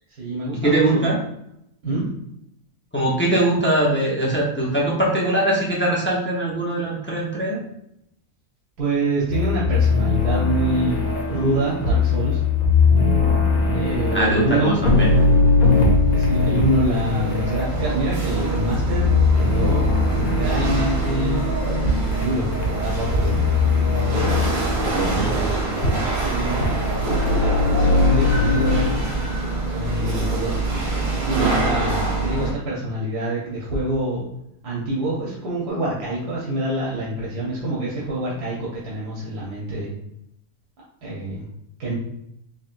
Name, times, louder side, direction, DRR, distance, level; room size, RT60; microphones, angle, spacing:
voice 1, 0.1-1.1 1.8-2.0 8.8-11.0 11.3-12.4 13.7-14.8 16.1-19.1 19.3-21.5 22.2-22.5 22.8-23.4 25.1-25.7 26.2-26.9 27.7-29.0 29.7-30.5 31.1-34.2 34.6-39.9 41.0-41.4 41.8-41.9, right 1 dB, 80° right, -6 dB, 1.5 m, -26 dB
voice 2, 0.6-1.2 2.9-7.6 14.1-15.1 25.0-25.4, right 1 dB, 20° left, -4 dB, 0.3 m, -21 dB
sound 1, 9.3-28.9, left 4 dB, 65° left, 1.3 m, -21 dB
Chatter / Hiss / Rattle, 15.6-32.5, right 3 dB, 40° right, 0.9 m, -25 dB
4.2 x 3.1 x 2.5 m, 0.78 s
omnidirectional pair, 1.6 m